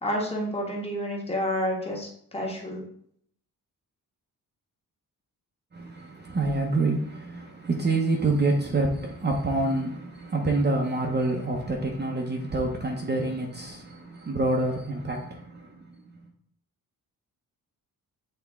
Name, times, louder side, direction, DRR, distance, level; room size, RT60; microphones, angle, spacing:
voice 1, 0.0-2.8, equal, 15° left, 1.3 m, -29 dB
voice 2, 5.7-15.7, right 2 dB, 30° right, 0.8 m, -27 dB
8.0 x 3.5 x 3.5 m
wide cardioid pair, 165°, 36 cm